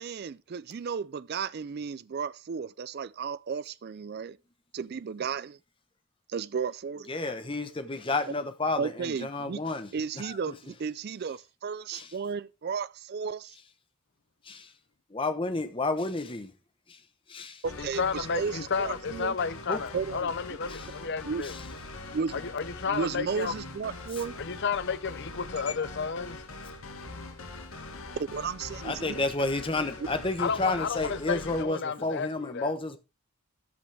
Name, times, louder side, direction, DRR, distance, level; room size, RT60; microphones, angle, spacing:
voice 1, 0.0-4.4 4.7-5.6 6.3-7.1 8.8-9.6 9.9-13.5 17.6-19.3 19.9-20.3 21.3-21.5 22.1-22.4 22.9-24.3 28.2-29.2 30.0-30.1, right 5 dB, 45° right, 0.4 m, -34 dB
voice 2, 7.1-9.9 10.2-10.4 11.9-12.1 14.4-14.7 15.1-16.5 16.9-17.0 17.3-17.6 19.7-19.8 20.7-20.9 21.4-21.6 25.8-25.9 28.8-33.0, left 2 dB, 25° left, 0.9 m, -31 dB
sound 1, 17.6-31.6, left 2 dB, 70° left, 1.6 m, -42 dB
voice 3, 17.8-21.5 22.3-23.5 24.4-26.4 30.4-32.7, left 5 dB, 50° left, 0.6 m, -32 dB
13.0 x 6.1 x 3.4 m
head